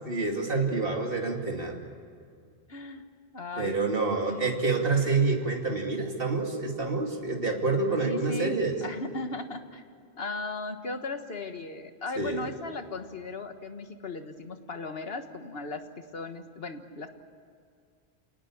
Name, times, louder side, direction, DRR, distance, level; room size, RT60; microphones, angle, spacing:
voice 1, 0.1-1.8 3.6-8.8 12.2-12.4, right 3 dB, 60° right, 1 dB, 2.9 m, -27 dB
voice 2, 2.7-3.0 3.3-3.8 4.3-4.5 4.7-4.8 7.9-9.8 10.2-17.1, left 3 dB, 65° left, 7 dB, 1.7 m, -37 dB
28.0 x 18.5 x 8.6 m, 2.3 s
omnidirectional pair, 1.1 m